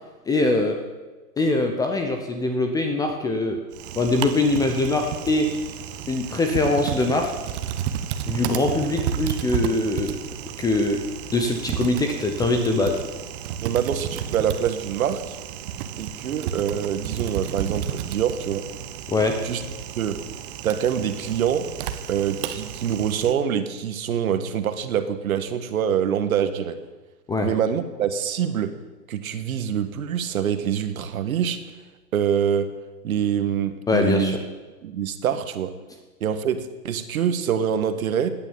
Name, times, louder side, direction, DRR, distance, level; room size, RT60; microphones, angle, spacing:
voice 1, 0.3-0.8 1.4-3.6 4.0-5.5 6.1-7.3 8.3-10.2 10.6-11.0 11.3-13.0 19.1-19.4 27.3-27.5 33.9-34.4, left 2 dB, 5° left, 5 dB, 0.8 m, -22 dB
Typing, 3.7-23.3, right 10 dB, 35° right, 1.1 m, -32 dB
voice 2, 13.6-15.4 16.0-18.6 19.4-19.6 19.9-20.2 20.6-21.7 22.1-26.8 27.4-28.7 29.1-31.6 32.1-32.7 33.0-34.4 34.8-35.7 36.2-38.3, right 8 dB, 55° right, 10 dB, 1.7 m, -25 dB
17.0 x 9.8 x 7.3 m, 1.2 s
hypercardioid pair, 130°, 49 cm